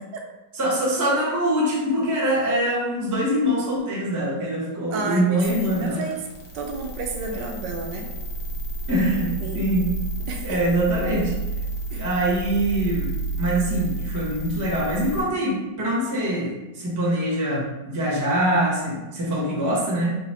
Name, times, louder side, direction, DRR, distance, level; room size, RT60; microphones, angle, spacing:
voice 1, 0.5-6.1 7.3-7.4 8.9-9.9 10.4-11.3 11.9-20.2, right 1 dB, 25° right, -5 dB, 0.4 m, -24 dB
voice 2, 4.9-6.3 6.5-8.1 9.2-9.6 10.3-10.6 11.9-12.1, right 4 dB, 75° right, 2 dB, 1.2 m, -31 dB
sound 1, 5.4-15.2, right 2 dB, 70° left, 1.3 m, -31 dB
3.8 x 2.1 x 4.1 m, 1.1 s
omnidirectional pair, 2.0 m